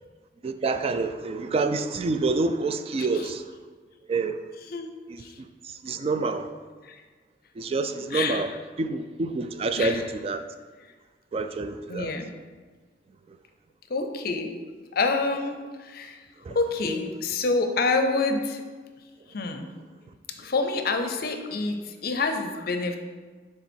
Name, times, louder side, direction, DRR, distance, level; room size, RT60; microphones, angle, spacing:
voice 1, 0.4-3.4 4.1-4.4 5.8-6.5 7.6-8.5 8.8-10.4 11.3-12.1 16.5-16.6, right 3 dB, 35° right, 8 dB, 0.3 m, -27 dB
voice 2, 3.0-3.3 4.6-4.9 5.2-5.4 6.8-7.0 8.1-8.6 9.6-10.1 10.8-10.9 11.9-12.3 13.9-14.6 14.9-16.3 16.5-18.6 19.3-19.7 20.4-23.0, left 3 dB, 60° left, 6 dB, 0.6 m, -28 dB
6.8 x 3.7 x 4.5 m, 1.4 s
head